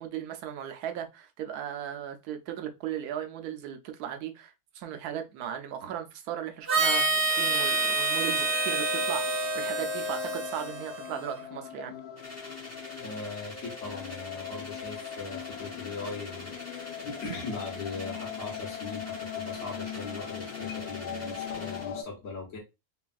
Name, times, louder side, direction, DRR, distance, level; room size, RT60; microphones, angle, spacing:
voice 1, 0.0-9.2 9.5-12.0, right 10 dB, 85° right, 1.1 m, -37 dB
sound 1, 6.5-22.0, left 8 dB, 85° left, 1.1 m, -41 dB
Harmonica, 6.7-11.4, right 2 dB, 50° right, 1.0 m, -28 dB
sound 2, 12.2-21.9, left 1 dB, 15° left, 0.8 m, -46 dB
voice 2, 13.0-22.6, left 3 dB, 60° left, 1.3 m, -40 dB
3.3 x 2.3 x 2.3 m
omnidirectional pair, 1.6 m